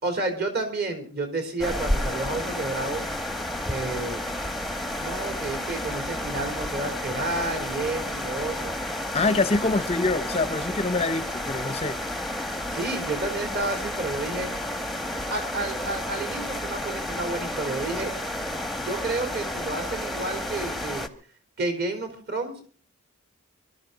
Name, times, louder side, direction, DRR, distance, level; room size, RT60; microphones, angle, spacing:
voice 1, 0.0-3.1 3.7-4.2 5.0-8.7 12.7-14.5 15.3-18.1 18.7-21.1 21.6-22.7, right 2 dB, 45° right, 5 dB, 3.6 m, -30 dB
sound 1, 1.6-21.1, left 1 dB, ahead, 1.0 m, -31 dB
voice 2, 9.1-12.0, left 3 dB, 25° left, 13 dB, 0.7 m, -25 dB
25.0 x 12.5 x 4.0 m, 0.42 s
head